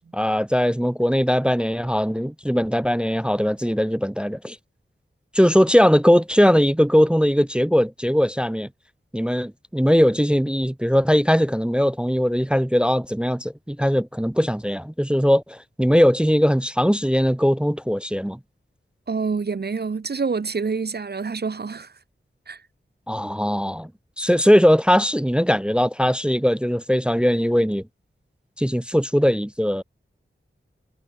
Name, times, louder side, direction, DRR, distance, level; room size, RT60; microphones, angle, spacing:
voice 1, 0.1-4.6 5.3-8.7 9.1-18.4 23.1-23.9 24.2-27.8 28.6-29.8, equal, 5° right, 0.4 m, -20 dB
voice 2, 19.1-21.9 22.5-22.6, right 4 dB, 50° right, 0.8 m, -27 dB
wide cardioid pair, 45°, 21 cm